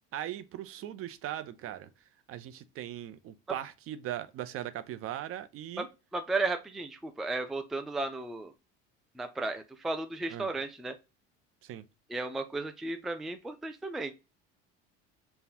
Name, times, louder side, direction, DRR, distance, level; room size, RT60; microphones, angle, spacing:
voice 1, 0.1-1.9 2.3-5.9 10.3-10.5 11.6-11.8, right 11 dB, 45° right, 0.6 m, -39 dB
voice 2, 6.1-8.5 9.2-10.9 12.1-14.1, right 3 dB, ahead, 0.4 m, -34 dB
5.2 x 2.3 x 2.8 m
supercardioid pair, 90°, 31 cm